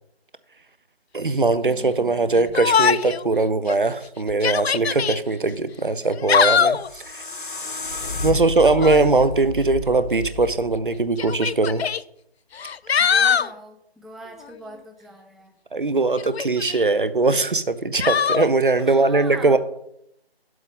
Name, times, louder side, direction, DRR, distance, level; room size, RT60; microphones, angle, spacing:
voice 1, 1.1-7.2 8.2-11.8 15.7-19.6, right 3 dB, 55° right, 13 dB, 0.6 m, -20 dB
Yell, 2.5-3.2 3.7-3.8 4.3-5.2 6.0-6.9 8.6-9.1 10.2-10.3 11.2-12.0 12.6-13.5 16.2-16.8 18.0-18.5, left 7 dB, 75° left, 0.5 m, -21 dB
sound 1, 6.6-11.6, left 3 dB, 50° left, 1.1 m, -31 dB
voice 2, 8.3-9.1 13.0-15.5 18.8-19.6, right 1 dB, ahead, 4 dB, 0.4 m, -42 dB
9.1 x 7.8 x 3.7 m, 0.76 s
figure-of-eight pair, 175°, 32 cm